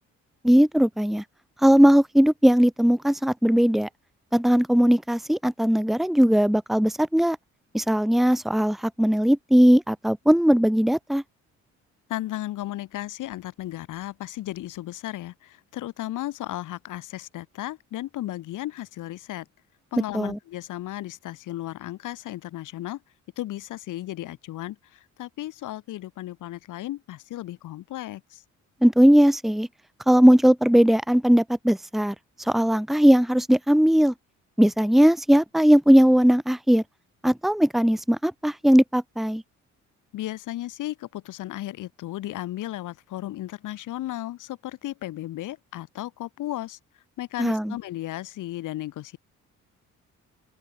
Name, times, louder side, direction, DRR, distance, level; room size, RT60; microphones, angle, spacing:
voice 1, 0.4-1.2 1.6-3.9 4.3-7.4 7.7-11.2 20.1-20.4 28.8-29.7 30.1-34.1 34.6-36.8 37.2-39.4 47.4-47.7, equal, ahead, 1.4 m, -19 dB
voice 2, 12.1-19.4 19.9-23.0 23.4-28.4 40.1-46.8 47.2-49.2, left 14 dB, 85° left, 8.0 m, -35 dB
open air
cardioid pair, 90°, 30 cm